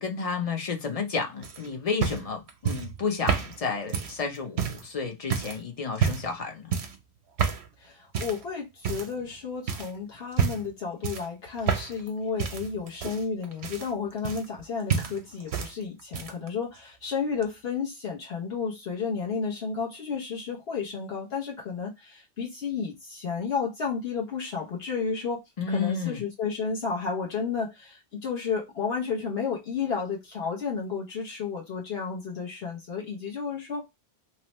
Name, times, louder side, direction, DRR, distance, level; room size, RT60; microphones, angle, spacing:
voice 1, 0.0-6.7 25.6-26.2, left 5 dB, 40° left, 0.7 m, -31 dB
Footsteps - Carpet, 1.4-4.9 5.3-5.6 6.0-6.4 6.7-7.0 7.4-7.7 8.1-8.4 8.8-9.3 9.7-9.9 10.3-10.7 11.0-12.1 12.4-14.6 14.9-15.7 16.0-16.5 17.4-17.5, right 7 dB, 80° right, 0.9 m, -29 dB
voice 2, 7.8-33.9, left 5 dB, 70° left, 1.1 m, -32 dB
2.9 x 2.1 x 2.9 m
omnidirectional pair, 1.1 m